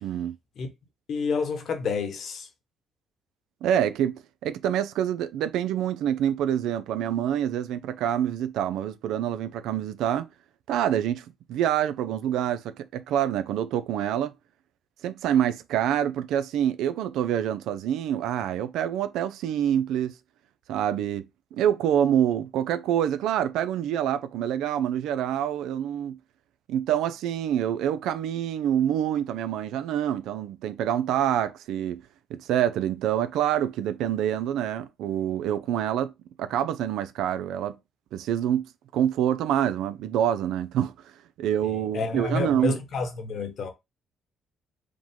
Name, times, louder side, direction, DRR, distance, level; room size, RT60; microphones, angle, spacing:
voice 1, 0.0-0.4 3.6-10.3 10.7-14.3 15.0-20.1 20.7-26.2 26.7-32.0 32.3-36.1 36.4-37.8 38.1-38.7 38.9-40.9 41.4-42.8, right 10 dB, 90° right, 0.4 m, -26 dB
voice 2, 1.1-2.5 41.6-43.7, left 4 dB, 65° left, 1.2 m, -29 dB
5.0 x 2.2 x 3.6 m
cardioid pair, 90°, 0 cm